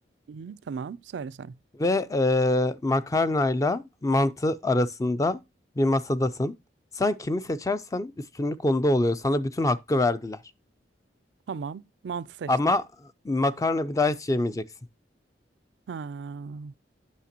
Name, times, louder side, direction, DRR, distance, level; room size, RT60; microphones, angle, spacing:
voice 1, 0.3-1.6 11.5-12.5 15.9-16.7, right 5 dB, 70° right, 0.3 m, -36 dB
voice 2, 1.8-5.4 5.8-6.5 7.0-8.1 8.4-10.4 12.5-12.8 13.2-14.6, left 2 dB, 20° left, 0.4 m, -24 dB
8.4 x 5.8 x 2.8 m
head